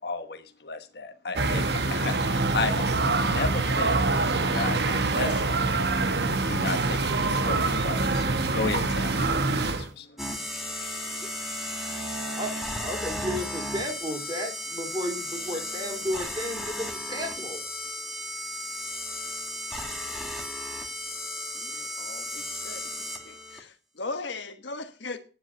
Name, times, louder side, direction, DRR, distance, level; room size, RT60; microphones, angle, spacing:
voice 1, 0.0-1.6 1.9-2.9 3.1-4.1 4.3-5.6 6.3-10.1, left 3 dB, 55° left, 1.1 m, -34 dB
sound 1, 1.4-9.9, right 3 dB, 60° right, 1.1 m, -25 dB
sound 2, 10.2-23.6, left 1 dB, ahead, 1.8 m, -34 dB
voice 2, 12.8-17.6, equal, 25° right, 3.5 m, -33 dB
voice 3, 21.5-22.9 23.2-25.2, left 3 dB, 70° left, 1.4 m, -38 dB
10.0 x 7.9 x 7.2 m
head